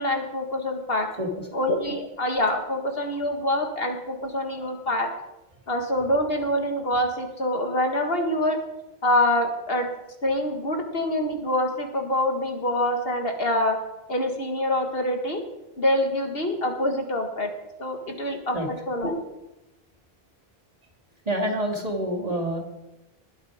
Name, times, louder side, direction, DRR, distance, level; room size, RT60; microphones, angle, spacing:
voice 1, 0.0-1.1 1.5-5.1 5.7-8.6 9.0-9.9 10.2-13.8 14.1-15.4 15.8-17.5 17.8-19.2, left 1 dB, 70° left, 3 dB, 2.1 m, -25 dB
voice 2, 1.1-1.5 3.4-3.6 4.6-4.7 6.3-6.4 7.9-8.1 18.3-18.7 21.2-22.6, equal, 40° right, 1 dB, 2.6 m, -29 dB
20.5 x 9.5 x 5.0 m, 0.96 s
omnidirectional pair, 1.0 m